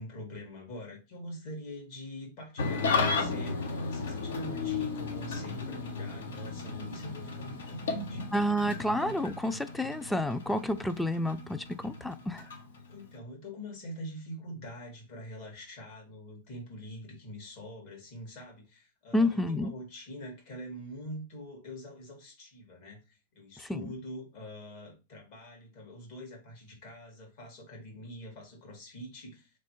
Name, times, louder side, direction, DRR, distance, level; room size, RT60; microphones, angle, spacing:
voice 1, 0.0-8.2 12.9-23.0 23.3-29.5, equal, 60° left, 1 dB, 1.8 m, -44 dB
Engine starting / Idling, 2.6-13.2, left 4 dB, 85° left, 0.8 m, -34 dB
voice 2, 8.3-12.4 19.1-19.7 23.7-23.9, left 1 dB, 5° left, 12 dB, 0.3 m, -29 dB
3.3 x 3.2 x 3.0 m, 0.29 s
hypercardioid pair, 125°, 0 cm